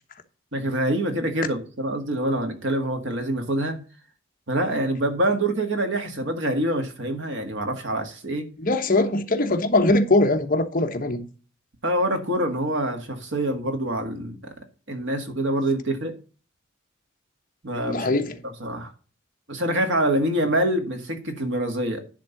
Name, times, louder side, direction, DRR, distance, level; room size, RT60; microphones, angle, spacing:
voice 1, 0.5-3.8 4.5-8.5 11.8-14.5 14.9-16.2 17.6-18.1 18.4-18.9 19.5-22.0, right 1 dB, 65° right, 1.9 m, -25 dB
voice 2, 8.6-11.2 17.9-18.4, left 2 dB, 45° left, 1.1 m, -21 dB
10.5 x 3.7 x 7.1 m
head